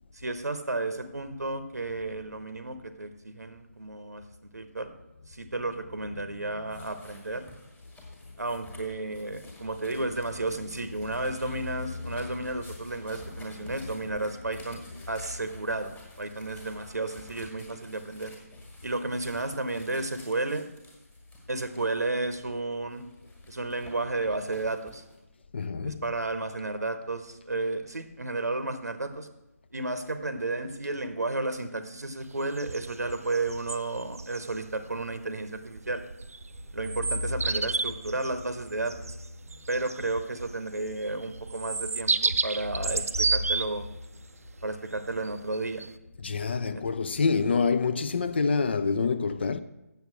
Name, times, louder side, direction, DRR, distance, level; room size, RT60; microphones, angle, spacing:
voice 1, 0.1-4.2 4.5-4.9 5.3-7.5 8.4-18.3 18.8-20.6 21.5-23.0 23.5-25.0 25.8-29.3 29.7-36.0 36.7-38.9 39.7-43.9 44.6-45.8 46.7-46.8, right 2 dB, 75° right, 0.8 m, -32 dB
voice 2, 6.4-6.8 12.0-12.5 13.6-13.9 25.5-26.0 46.2-49.6, left 4 dB, 40° left, 0.5 m, -28 dB
sound 1, 6.7-22.4 22.9-25.2, left 1 dB, 10° left, 1.5 m, -53 dB
sound 2, 32.2-45.9, right 4 dB, 60° right, 0.5 m, -33 dB
7.8 x 7.1 x 6.0 m
figure-of-eight pair, 150°, 9 cm